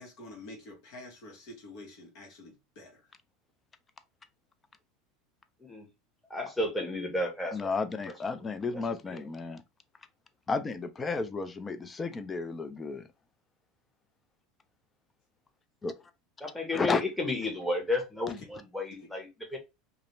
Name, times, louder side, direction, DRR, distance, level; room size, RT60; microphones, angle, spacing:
voice 1, 0.0-3.1 18.4-18.5 19.0-19.1, left 2 dB, 65° left, 0.9 m, -48 dB
voice 2, 6.3-7.7 8.7-9.2 16.4-19.6, left 2 dB, 5° left, 0.9 m, -33 dB
voice 3, 7.5-9.6 10.5-13.0 15.8-15.9 16.7-17.0, left 4 dB, 20° left, 0.4 m, -32 dB
2.4 x 2.1 x 3.0 m
supercardioid pair, 110°, 0 cm